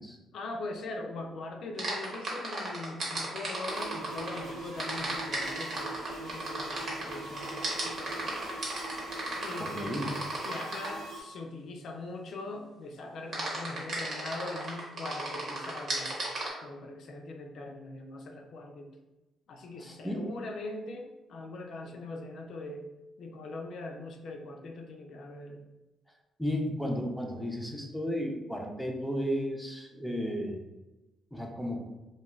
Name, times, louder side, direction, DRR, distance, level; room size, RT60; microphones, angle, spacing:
voice 1, 0.3-8.4 9.4-10.0 10.4-16.2 16.6-19.0 19.5-22.9 23.2-25.6, left 2 dB, 65° left, 2 dB, 0.4 m, -41 dB
sound 1, 1.8-4.4 4.8-11.0 13.3-16.5, right 2 dB, 55° right, 1.0 m, -35 dB
sound 2, 3.7-11.2, right 2 dB, 80° right, 0.8 m, -42 dB
voice 2, 9.6-10.1 19.8-20.2 26.4-30.6 31.3-31.8, equal, ahead, 0 dB, 0.5 m, -33 dB
2.3 x 2.2 x 3.1 m, 1.0 s
cardioid pair, 90°, 0 cm